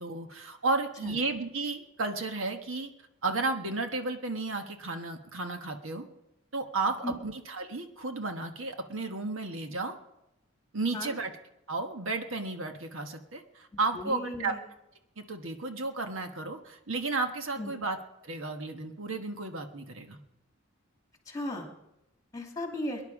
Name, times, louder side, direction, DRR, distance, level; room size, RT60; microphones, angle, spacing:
voice 1, 0.0-2.9 3.2-6.1 6.5-10.0 10.7-11.3 11.7-14.5 15.2-18.0 18.2-20.2, right 3 dB, 70° right, 5 dB, 1.3 m, -33 dB
voice 2, 13.9-14.6 17.6-17.7 21.3-21.7 22.3-23.0, left 1 dB, 15° left, 2 dB, 2.5 m, -36 dB
23.0 x 10.5 x 4.9 m, 0.88 s
head